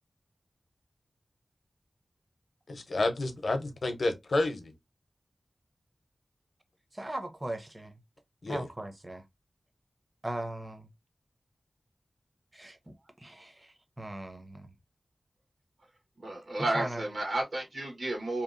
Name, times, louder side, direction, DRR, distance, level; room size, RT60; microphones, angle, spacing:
voice 1, 2.7-4.7 8.4-8.7, left 2 dB, 75° left, 0.6 m, -30 dB
voice 2, 6.9-8.0 8.5-9.2 10.2-10.9 12.5-14.7 16.6-17.0, right 1 dB, 25° right, 0.6 m, -39 dB
voice 3, 16.2-18.4, right 2 dB, 70° right, 1.2 m, -32 dB
2.8 x 2.3 x 2.4 m
wide cardioid pair, 85°, 0 cm